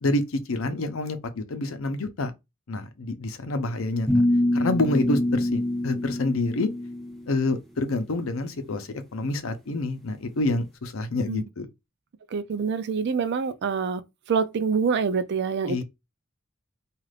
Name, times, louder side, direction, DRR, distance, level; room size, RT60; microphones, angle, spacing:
voice 1, 0.0-2.3 2.7-4.1 4.5-6.7 7.3-11.7 15.7-15.8, left 2 dB, 80° left, 0.7 m, -27 dB
sound 1, 4.1-7.2, left 1 dB, ahead, 0.8 m, -25 dB
voice 2, 12.3-14.0 14.3-15.8, right 5 dB, 55° right, 0.4 m, -26 dB
3.3 x 2.4 x 2.4 m
head